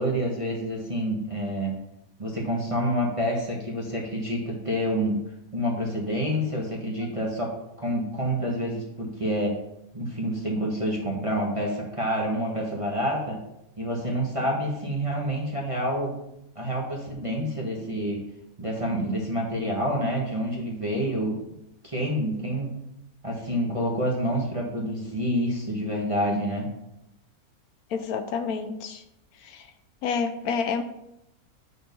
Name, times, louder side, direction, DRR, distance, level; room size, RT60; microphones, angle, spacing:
voice 1, 0.0-1.7 2.2-5.2 5.5-7.5 7.8-9.5 9.9-13.4 13.8-16.1 16.5-18.2 18.6-21.4 21.8-22.7 23.2-26.7, equal, 25° right, -3 dB, 1.4 m, -28 dB
voice 2, 27.9-29.0 29.4-29.7 30.0-30.8, left 5 dB, 80° left, 8 dB, 1.1 m, -29 dB
8.4 x 4.5 x 5.4 m, 0.84 s
omnidirectional pair, 1.5 m